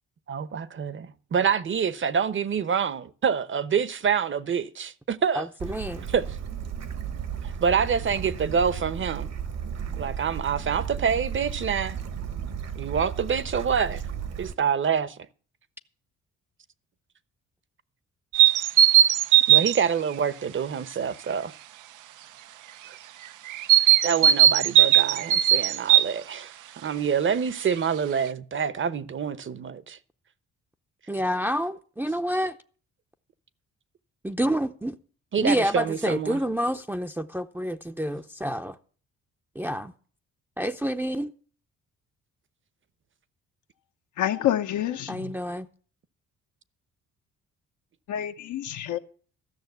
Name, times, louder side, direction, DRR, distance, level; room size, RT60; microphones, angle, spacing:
voice 1, 0.3-5.5 6.1-6.2 7.4-9.3 10.0-12.0 12.7-14.0 14.4-15.2 19.5-21.5 24.0-26.5 26.8-30.0 35.3-36.4, right 7 dB, 40° right, 0.9 m, -26 dB
voice 2, 5.3-6.1 31.1-32.6 34.2-35.0 35.4-38.8 39.6-39.9 40.6-41.3 45.1-45.7, equal, 5° right, 0.6 m, -28 dB
Bird / Stream, 5.6-14.5, right 8 dB, 60° right, 1.4 m, -34 dB
sound 1, 18.3-19.8 23.5-26.1, right 11 dB, 80° right, 0.7 m, -18 dB
voice 3, 44.2-45.4 48.1-49.0, left 11 dB, 75° left, 0.9 m, -28 dB
13.5 x 6.4 x 8.0 m
cardioid pair, 90°, 30 cm